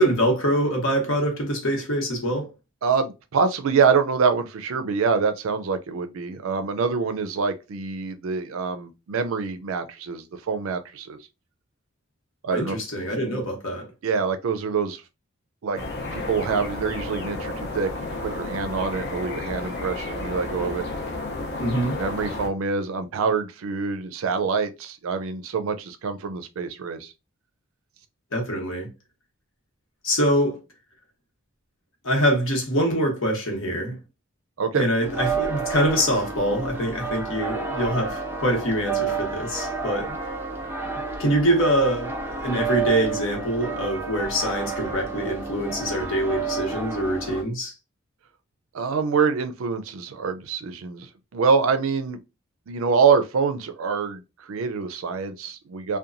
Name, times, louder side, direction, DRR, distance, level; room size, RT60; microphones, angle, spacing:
voice 1, 0.0-2.5 12.5-13.9 21.6-22.0 28.3-28.9 30.0-30.6 32.0-34.0 34.7-40.2 41.2-47.7, equal, 70° left, 1.0 m, -24 dB
voice 2, 2.8-11.2 12.4-12.8 14.0-15.0 15.6-15.8 16.1-20.8 22.0-27.1 34.6-34.8 48.7-52.2 52.7-56.0, right 5 dB, 75° right, 0.4 m, -25 dB
sound 1, 15.7-22.5, left 2 dB, 50° left, 0.6 m, -32 dB
sound 2, 35.0-47.4, right 4 dB, 10° right, 0.4 m, -30 dB
2.8 x 2.2 x 2.5 m
head